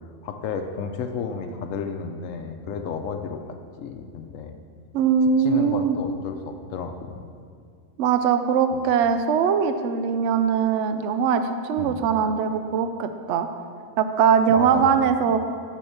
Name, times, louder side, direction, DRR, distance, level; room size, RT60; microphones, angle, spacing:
voice 1, 0.2-4.6 5.4-7.2 11.8-12.0 14.5-15.0, left 5 dB, 85° left, 6 dB, 1.1 m, -32 dB
voice 2, 4.9-6.0 8.0-13.5 14.0-15.4, right 7 dB, 70° right, 9 dB, 0.8 m, -21 dB
7.6 x 6.3 x 6.7 m, 2.2 s
omnidirectional pair, 1.3 m